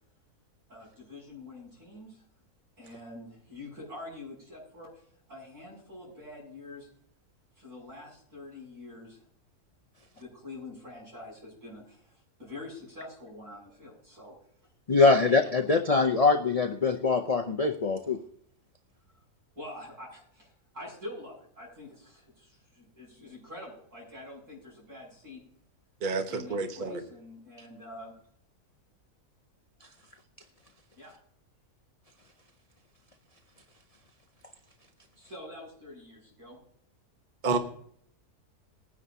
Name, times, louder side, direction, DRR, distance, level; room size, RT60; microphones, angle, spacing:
voice 1, 0.7-2.2 2.8-5.0 5.3-6.9 7.6-9.2 10.1-14.3 15.0-15.4 19.5-25.4 26.3-28.2 31.0-31.2 35.2-36.6, left 2 dB, 85° right, -4 dB, 7.2 m, -46 dB
voice 2, 14.9-18.2, left 4 dB, 70° left, 4 dB, 0.3 m, -23 dB
voice 3, 26.0-27.0 37.4-37.6, right 3 dB, 35° right, 6 dB, 1.0 m, -29 dB
20.0 x 9.7 x 2.7 m, 0.63 s
omnidirectional pair, 1.6 m